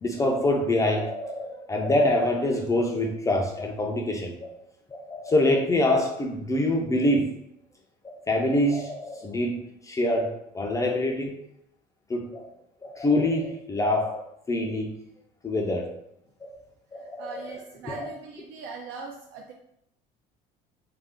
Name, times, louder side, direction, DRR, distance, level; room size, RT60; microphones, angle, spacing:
voice 1, 0.0-4.5 4.9-7.3 8.0-9.6 9.8-11.3 12.1-12.5 12.8-14.9 15.4-15.9 16.4-16.5 16.9-17.6 17.9-18.1, left 1 dB, 20° left, 1 dB, 0.3 m, -25 dB
voice 2, 16.9-19.5, right 4 dB, 80° right, -1 dB, 0.4 m, -41 dB
2.5 x 2.3 x 3.5 m, 0.77 s
cardioid pair, 125°, 17 cm